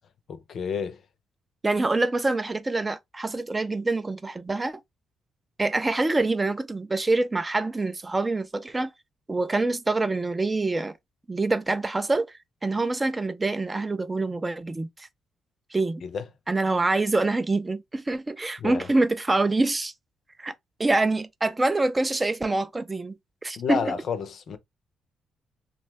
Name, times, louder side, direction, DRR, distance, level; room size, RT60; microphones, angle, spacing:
voice 1, 0.3-1.0 16.0-16.2 18.6-18.9 23.6-24.6, left 6 dB, 60° left, 0.5 m, -30 dB
voice 2, 1.6-4.8 5.6-8.9 9.3-11.0 11.3-15.1 15.7-16.0 16.5-19.9 20.4-20.5 20.8-23.8, right 2 dB, 20° right, 0.3 m, -25 dB
2.6 x 2.2 x 3.1 m
cardioid pair, 90°, 0 cm